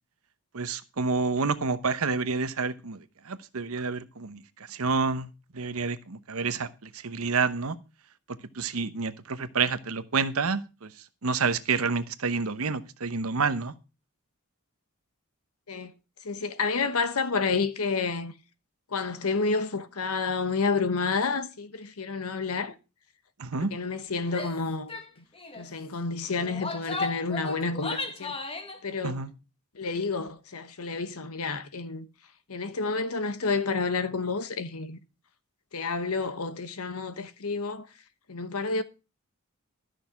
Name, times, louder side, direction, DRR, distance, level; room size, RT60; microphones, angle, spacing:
voice 1, 0.5-4.4 4.7-5.3 5.5-7.8 8.5-10.9 11.2-13.7 23.4-23.7 29.0-29.3, right 4 dB, 70° right, 0.9 m, -29 dB
voice 2, 16.2-18.3 18.9-22.7 23.5-24.9 25.6-28.4 28.8-29.2 29.7-32.1 32.5-35.0 35.7-37.9 38.3-38.8, left 4 dB, 80° left, 1.1 m, -30 dB
Female speech woman speaking / Yell, 24.3-24.6 24.9-25.1 25.4-25.7 26.4-28.8, left 3 dB, 25° left, 1.4 m, -35 dB
13.0 x 6.4 x 5.6 m
head